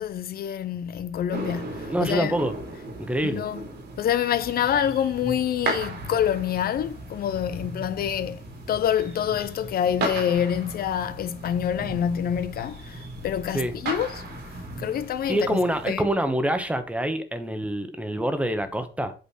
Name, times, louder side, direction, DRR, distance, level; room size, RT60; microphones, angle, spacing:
voice 1, 0.0-2.3 3.2-3.6 4.0-14.2 14.8-15.6 15.9-16.1, left 9 dB, 55° left, 0.5 m, -26 dB
sound 1, 1.3-15.9, right 3 dB, 70° right, 3.0 m, -36 dB
voice 2, 1.9-2.5 3.0-3.5 13.5-13.7 15.3-19.1, right 1 dB, 5° right, 1.0 m, -26 dB
8.4 x 4.3 x 5.6 m
cardioid pair, 145°, 19 cm